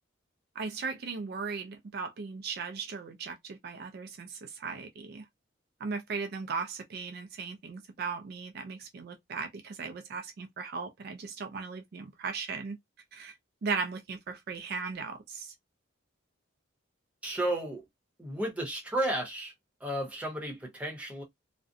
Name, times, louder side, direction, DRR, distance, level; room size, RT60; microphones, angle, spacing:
voice 1, 0.6-5.2 5.8-12.8 13.1-13.3 13.6-15.5, right 5 dB, 50° right, 0.4 m, -37 dB
voice 2, 17.2-17.8 18.2-19.5 19.8-21.2, right 1 dB, 5° right, 0.8 m, -33 dB
2.4 x 2.1 x 2.5 m
head